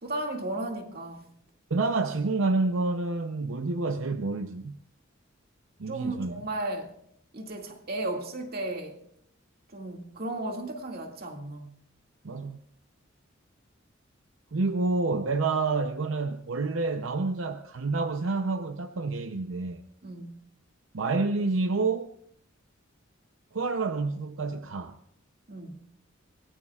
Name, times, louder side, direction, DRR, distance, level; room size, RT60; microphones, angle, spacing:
voice 1, 0.0-1.3 5.9-6.9 7.3-9.0 9.7-11.7 20.0-20.4 25.5-25.8, right 2 dB, 50° right, 2.2 m, -35 dB
voice 2, 1.7-4.8 5.8-6.3 12.2-12.6 14.5-19.8 20.9-22.1 23.5-25.0, right 3 dB, 80° right, 0.7 m, -28 dB
24.5 x 18.5 x 2.4 m
head